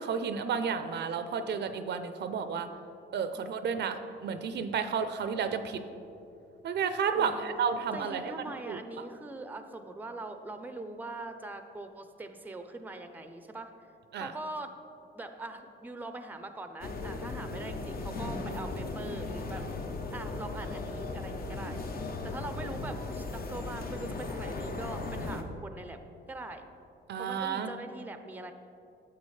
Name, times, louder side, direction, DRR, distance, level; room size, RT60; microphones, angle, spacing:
voice 1, 0.0-2.7 3.1-5.8 6.6-8.3 8.7-8.8 14.1-14.3 27.1-27.7, right 6 dB, 60° right, 9 dB, 0.5 m, -31 dB
voice 2, 3.3-3.7 7.1-7.5 7.9-13.7 14.1-14.8 15.1-19.7 20.1-21.8 22.2-26.0 26.3-26.6 27.2-28.5, right 2 dB, 10° right, 8 dB, 0.5 m, -42 dB
sound 1, 16.8-25.4, left 3 dB, 50° left, 0.8 m, -37 dB
10.5 x 6.9 x 3.2 m, 2.6 s
cardioid pair, 90°, 20 cm